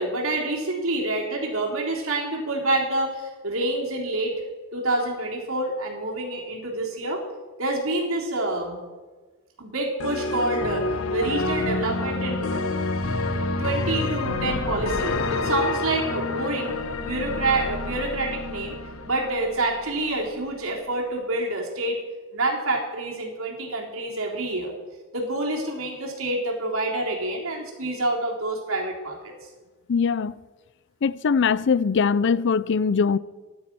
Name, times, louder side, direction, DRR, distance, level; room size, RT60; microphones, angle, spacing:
voice 1, 0.0-4.4 4.7-7.2 7.6-8.8 9.6-10.9 11.1-12.6 13.3-16.7 17.0-18.8 19.0-22.0 22.3-24.7 25.1-29.3, right 2 dB, 80° right, 3.8 m, -27 dB
sound 1, 10.0-20.1, left 3 dB, 85° left, 1.2 m, -28 dB
voice 2, 29.9-30.3 31.0-33.2, left 5 dB, 60° left, 0.5 m, -21 dB
15.0 x 11.5 x 6.2 m
head